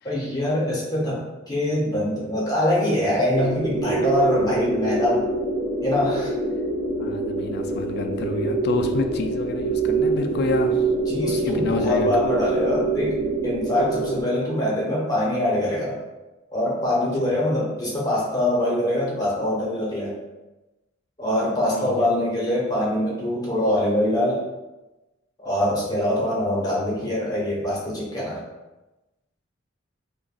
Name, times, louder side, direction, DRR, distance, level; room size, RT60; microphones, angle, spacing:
voice 1, 0.0-5.2 5.8-6.3 11.1-13.2 13.4-16.0 16.5-20.1 21.2-24.4 25.4-28.4, left 1 dB, 20° left, -6 dB, 0.9 m, -24 dB
sound 1, 3.3-14.2, right 2 dB, 55° right, 1.0 m, -25 dB
voice 2, 7.0-10.9 11.2-12.1 21.7-22.1, left 3 dB, 60° left, 5 dB, 0.4 m, -29 dB
5.0 x 2.2 x 2.3 m, 1.1 s
head